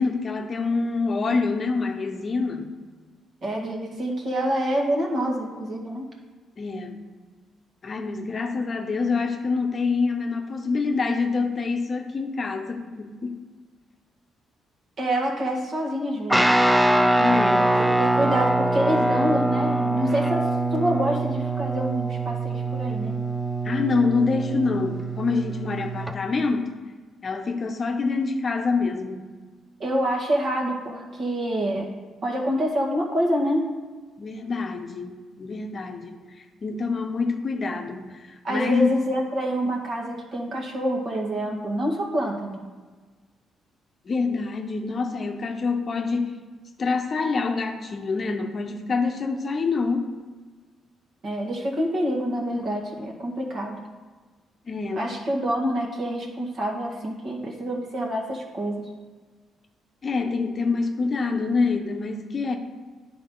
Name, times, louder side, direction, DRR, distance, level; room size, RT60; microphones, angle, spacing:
voice 1, 0.0-2.7 6.6-7.0 7.8-13.4 17.2-17.8 23.6-26.7 27.2-29.3 34.2-39.0 44.1-46.4 46.8-50.1 54.7-55.1 60.0-62.6, left 4 dB, 40° left, 4 dB, 0.7 m, -26 dB
voice 2, 3.4-6.1 15.0-16.4 17.6-23.2 29.8-31.9 32.2-33.7 38.4-42.6 51.2-53.8 55.0-58.9, equal, 55° right, -1 dB, 1.7 m, -27 dB
Guitar, 16.3-26.1, right 2 dB, 5° right, 0.4 m, -23 dB
10.5 x 4.6 x 3.9 m, 1.4 s
cardioid pair, 90°, 0 cm